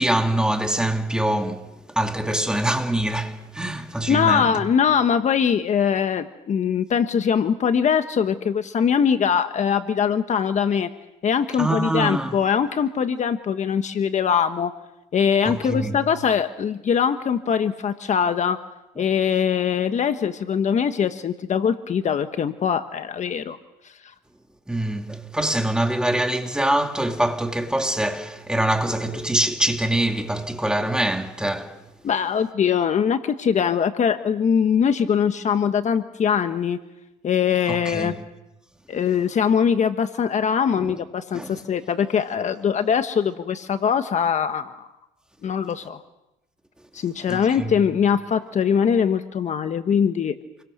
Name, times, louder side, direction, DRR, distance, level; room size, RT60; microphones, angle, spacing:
voice 1, 0.0-4.7 11.6-12.4 15.5-16.0 19.0-19.1 24.7-31.8 37.7-38.2 40.7-41.0 41.3-41.6 47.3-47.8, right 1 dB, 5° right, 2.6 m, -24 dB
voice 2, 4.1-10.9 11.2-14.7 15.1-18.6 19.0-23.6 32.0-36.8 37.2-38.1 38.9-44.9 45.4-46.0 46.9-50.3, left 7 dB, 45° left, 1.3 m, -22 dB
28.5 x 23.0 x 6.7 m
cardioid pair, 110°, 17 cm